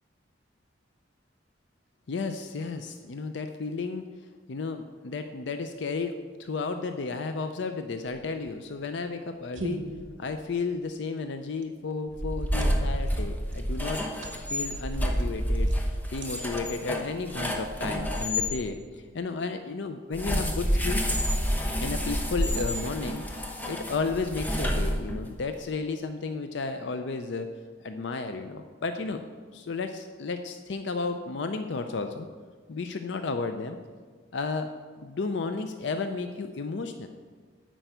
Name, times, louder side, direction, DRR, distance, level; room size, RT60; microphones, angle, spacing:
voice 1, 2.1-4.0 4.5-9.8 10.2-14.0 14.5-15.7 16.1-21.0 21.8-27.5 27.8-29.2 29.5-32.3 32.7-33.8 34.3-34.7 35.0-37.1, left 4 dB, 65° left, 7 dB, 0.5 m, -33 dB
sound 1, 8.0-17.6, right 2 dB, 70° right, 1.1 m, -43 dB
sound 2, 12.1-18.5 20.1-25.4, equal, 10° left, 0.9 m, -29 dB
10.0 x 4.6 x 7.9 m, 1.5 s
head